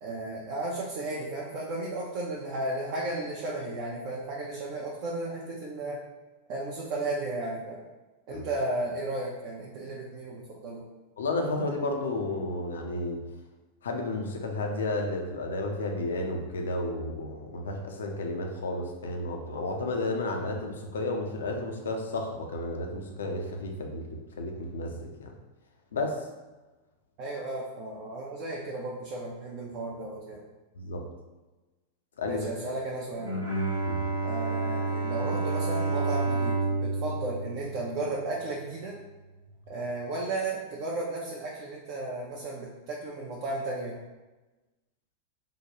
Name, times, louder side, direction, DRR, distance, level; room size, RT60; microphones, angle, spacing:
voice 1, 0.0-6.0 6.5-7.8 8.3-10.8 27.2-30.4 32.3-33.4 34.2-39.0 39.7-44.0, right 2 dB, 45° right, -3 dB, 0.5 m, -34 dB
voice 2, 11.2-13.2 13.8-25.3 25.9-26.2 30.8-31.0 32.2-32.4 33.9-34.0, left 2 dB, 65° left, 3 dB, 0.5 m, -32 dB
Bowed string instrument, 33.1-38.5, right 3 dB, 85° right, 0.7 m, -30 dB
3.6 x 2.2 x 2.8 m, 1.2 s
figure-of-eight pair, 90°, 0 cm